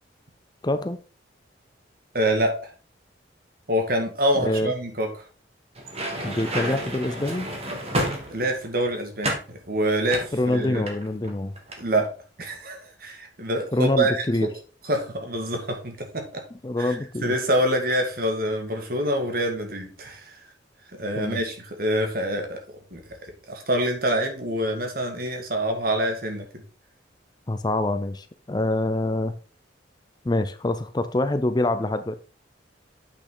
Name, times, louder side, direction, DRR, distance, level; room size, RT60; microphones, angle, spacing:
voice 1, 0.6-1.0 4.4-4.7 6.2-7.5 10.3-11.5 13.7-14.5 16.6-17.3 21.2-21.4 27.5-29.3 30.2-32.1, left 1 dB, 20° left, 0.5 m, -25 dB
voice 2, 2.1-2.7 3.7-5.1 8.3-10.8 11.8-12.1 12.4-14.2 14.9-16.4 16.8-20.4 20.9-26.6, right 1 dB, 50° right, 1.9 m, -26 dB
sound 1, 5.8-8.7 9.2-9.5 10.1-11.3 11.6-11.8, right 1 dB, 30° right, 1.8 m, -30 dB
8.5 x 6.1 x 3.9 m
head